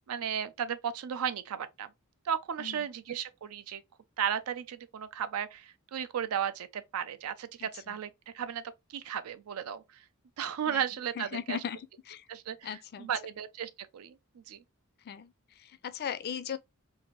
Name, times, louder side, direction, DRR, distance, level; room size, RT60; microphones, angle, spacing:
voice 1, 0.1-1.9 2.2-3.8 4.2-8.6 8.9-10.0 10.4-11.6 12.3-14.6, right 8 dB, 80° right, 0.4 m, -35 dB
voice 2, 7.6-8.0 10.7-10.8 11.2-12.2 12.6-13.1 15.0-16.6, left 8 dB, 45° left, 0.3 m, -38 dB
2.7 x 2.5 x 3.0 m
head